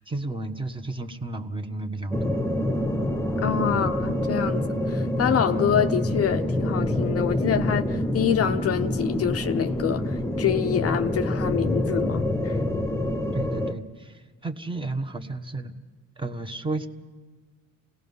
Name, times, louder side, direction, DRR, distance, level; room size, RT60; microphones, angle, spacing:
voice 1, 0.0-2.4 3.7-3.9 13.3-15.7 16.2-16.9, right 2 dB, 15° right, 1.3 m, -32 dB
sound 1, 2.1-13.7, left 1 dB, 10° left, 1.0 m, -26 dB
voice 2, 3.4-12.6, left 9 dB, 45° left, 0.7 m, -26 dB
28.0 x 18.5 x 5.5 m
cardioid pair, 105°, 34 cm